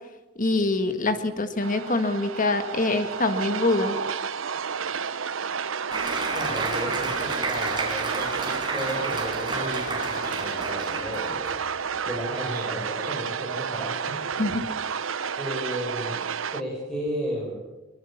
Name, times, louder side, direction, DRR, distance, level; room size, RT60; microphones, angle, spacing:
voice 1, 0.4-4.0 14.4-14.6, left 2 dB, 40° left, 8 dB, 1.7 m, -24 dB
sound 1, 1.6-16.6, right 6 dB, 90° right, 0.8 m, -31 dB
Applause, 5.9-11.6, right 3 dB, 25° right, 4.8 m, -31 dB
voice 2, 6.3-11.4 12.0-14.2 15.4-17.6, equal, 5° left, -4 dB, 6.4 m, -34 dB
sound 2, 8.2-8.6 9.4-9.5 9.7-10.4 10.8-10.9 12.5-12.8 13.0-13.2, right 5 dB, 50° right, 3.9 m, -41 dB
23.5 x 21.5 x 7.3 m, 1.1 s
head